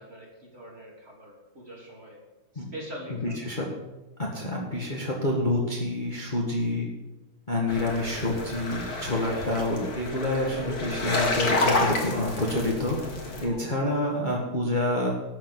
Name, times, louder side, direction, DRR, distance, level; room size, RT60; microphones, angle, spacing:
voice 1, 0.0-2.2 2.5-3.4 7.8-8.0 9.2-9.6 13.4-13.9, equal, 30° right, -2 dB, 3.5 m, -43 dB
voice 2, 3.1-3.7 4.2-6.9 7.5-13.1 13.4-15.2, left 1 dB, 25° left, -2 dB, 1.9 m, -28 dB
sound 1, 7.7-13.4, left 2 dB, 45° left, 2.7 m, -29 dB
13.0 x 7.4 x 8.9 m, 1.1 s
omnidirectional pair, 2.3 m